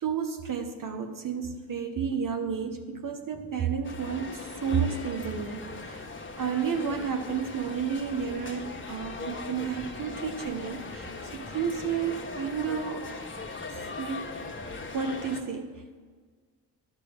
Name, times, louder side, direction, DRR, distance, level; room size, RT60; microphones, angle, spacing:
voice 1, 0.0-13.1 14.0-14.3 14.9-16.0, right 6 dB, 50° right, 6 dB, 1.0 m, -31 dB
sound 1, 3.8-15.4, left 3 dB, 30° left, 1.4 m, -39 dB
sound 2, 4.3-13.3, right 2 dB, 70° right, 3.3 m, -54 dB
11.0 x 6.4 x 5.2 m, 1.5 s
supercardioid pair, 55°, 41 cm